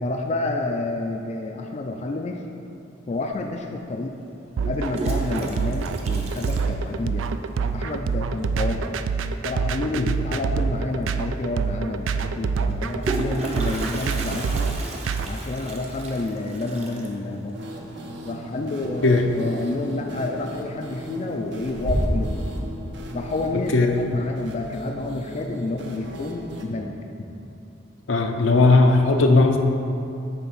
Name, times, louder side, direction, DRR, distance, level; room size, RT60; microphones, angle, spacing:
voice 1, 0.0-2.4 3.1-4.2 4.7-7.3 7.7-9.0 9.4-14.7 15.3-17.7 18.2-22.4 23.1-26.9, left 2 dB, 35° left, 3 dB, 0.3 m, -29 dB
Toilet flush, 3.3-3.4 4.6-7.4 7.7-7.8 8.1-8.2 8.4-8.8 10.6-10.7 11.0-11.1 12.6-19.3 19.6-20.1 20.5-21.0 21.4-22.4, right 1 dB, 35° right, 0.8 m, -32 dB
sound 1, 4.6-15.3, right 5 dB, 80° right, 0.3 m, -26 dB
sound 2, 17.5-26.6, right 1 dB, 65° right, 0.8 m, -38 dB
voice 2, 23.5-23.9 28.1-29.6, left 3 dB, 75° left, 4 dB, 0.7 m, -17 dB
9.1 x 3.5 x 5.8 m, 2.8 s
head